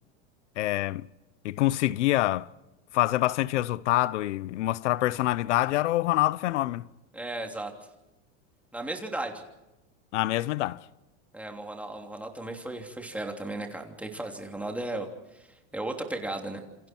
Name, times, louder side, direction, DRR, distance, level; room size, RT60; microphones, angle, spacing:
voice 1, 0.6-1.1 1.4-2.5 2.9-6.9 10.1-10.8, left 16 dB, 90° left, 0.8 m, -26 dB
voice 2, 7.1-7.7 8.7-9.4 11.3-15.5 15.7-16.6, right 2 dB, 5° right, 3.0 m, -35 dB
28.0 x 27.0 x 4.5 m
supercardioid pair, 145°, 35 cm